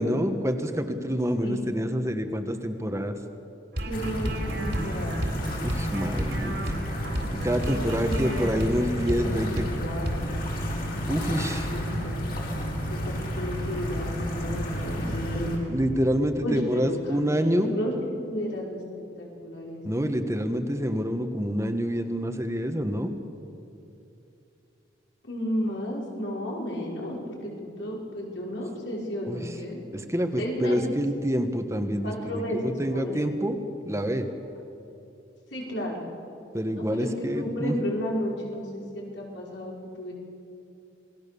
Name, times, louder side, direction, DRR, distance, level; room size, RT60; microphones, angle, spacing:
voice 1, 0.0-3.2 5.6-6.7 7.3-9.6 11.1-11.7 15.0-15.1 15.7-17.8 19.8-23.1 29.2-29.5 29.9-33.6 33.8-34.3 36.5-37.8, equal, 15° right, 6 dB, 1.3 m, -27 dB
sound 1, 3.7-9.3 9.6-9.7 10.1-10.2, equal, 70° right, 3.6 m, -32 dB
voice 2, 3.9-4.3 4.6-5.3 7.6-7.7 8.0-8.6 9.1-10.4 11.1-12.2 12.9-15.8 16.4-17.9 18.2-18.8 19.2-19.8 25.2-29.8 30.4-31.0 32.0-33.3 35.5-36.0 36.9-37.1 37.3-38.8 39.1-40.1, equal, 80° left, -2 dB, 5.4 m, -33 dB
sound 2, 3.9-15.6, equal, 55° left, 4.5 m, -31 dB
27.5 x 19.5 x 6.9 m, 2.7 s
head